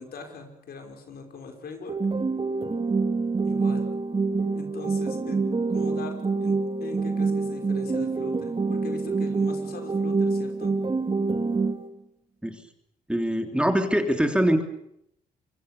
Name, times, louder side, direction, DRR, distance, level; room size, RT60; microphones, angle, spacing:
voice 1, 0.0-2.0 3.5-3.8 4.4-5.4 5.7-6.1 6.4-6.5 6.8-10.7, left 4 dB, 65° left, 4 dB, 5.5 m, -41 dB
sound 1, 1.9-11.9, right 4 dB, 30° right, 2.5 m, -26 dB
voice 2, 13.1-14.6, equal, 5° right, 6 dB, 3.4 m, -23 dB
26.0 x 23.5 x 7.0 m, 0.75 s
supercardioid pair, 65°, 17 cm